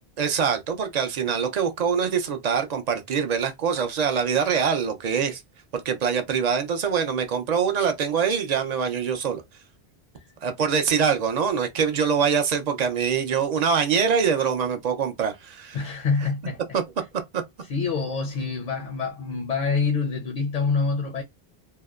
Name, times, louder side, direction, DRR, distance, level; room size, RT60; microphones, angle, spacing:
voice 1, 0.2-5.4 5.7-9.4 10.4-15.8 16.7-16.8 17.3-17.4, right 6 dB, 55° right, 0.5 m, -24 dB
voice 2, 15.7-16.6 17.6-21.2, left 4 dB, 55° left, 0.5 m, -26 dB
2.7 x 2.1 x 2.2 m
omnidirectional pair, 1.0 m